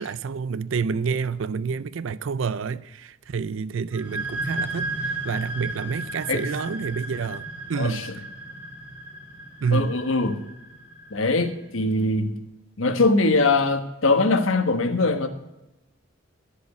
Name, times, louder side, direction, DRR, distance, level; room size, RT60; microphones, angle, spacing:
voice 1, 0.0-8.1 9.6-10.0, right 5 dB, 65° right, 0.4 m, -28 dB
sound 1, 3.9-11.4, right 2 dB, 5° right, 2.0 m, -34 dB
voice 2, 7.7-8.1 9.7-10.4 11.1-12.4 12.8-15.3, left 3 dB, 75° left, 1.3 m, -22 dB
14.0 x 5.2 x 9.3 m
head